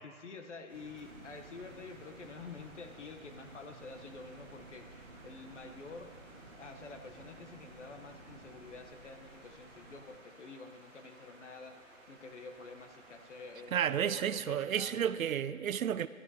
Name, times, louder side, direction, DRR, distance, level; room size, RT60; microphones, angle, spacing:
voice 1, 0.0-6.1 6.6-15.3, left 4 dB, 55° left, 1.0 m, -49 dB
sound 1, 0.7-14.1, right 2 dB, 10° right, 2.1 m, -58 dB
sound 2, 0.7-8.9, right 3 dB, 35° right, 1.0 m, -56 dB
sound 3, 1.0-10.1, right 1 dB, 15° left, 1.2 m, -58 dB
voice 2, 13.7-16.1, right 9 dB, 70° right, 0.6 m, -31 dB
14.5 x 12.5 x 2.8 m
hypercardioid pair, 160°, 42 cm